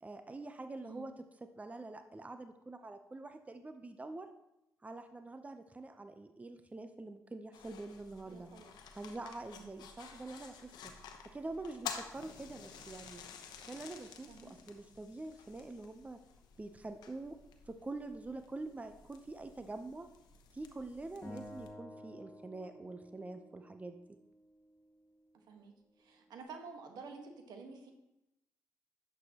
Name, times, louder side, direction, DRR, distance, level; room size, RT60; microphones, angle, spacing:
voice 1, 0.0-4.3 4.8-8.5 8.9-10.9 11.2-13.2 13.7-16.2 16.6-17.4 17.6-20.1 20.5-24.2, right 2 dB, 20° right, 8 dB, 0.7 m, -46 dB
sound 1, 7.5-21.7, left 7 dB, 75° left, 0.9 m, -51 dB
voice 2, 8.3-8.7 9.6-9.8 14.3-14.5 25.5-25.7 26.0-27.9, right 4 dB, 70° right, 4 dB, 1.3 m, -50 dB
Acoustic guitar, 21.2-24.5, left 1 dB, 35° left, 1.8 m, -52 dB
11.0 x 7.0 x 2.9 m, 0.89 s
supercardioid pair, 55°, 7 cm